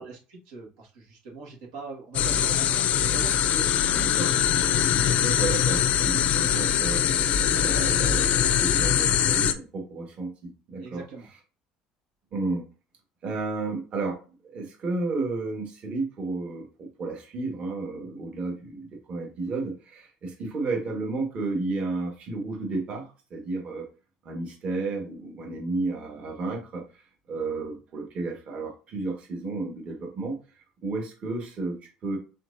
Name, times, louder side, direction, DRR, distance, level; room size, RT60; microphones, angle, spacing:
voice 1, 0.0-4.0 10.8-11.3, right 4 dB, 80° right, -2 dB, 1.8 m, -41 dB
sound 1, 2.1-9.5, left 9 dB, 60° left, 0.5 m, -22 dB
voice 2, 4.0-4.3 5.2-7.0 7.5-11.0 12.3-12.6 13.2-14.2 14.4-23.9 24.2-26.8 27.3-30.4 30.8-32.2, right 3 dB, 50° right, 0 dB, 1.6 m, -32 dB
4.4 x 4.0 x 2.7 m, 0.34 s
supercardioid pair, 100°, 3 cm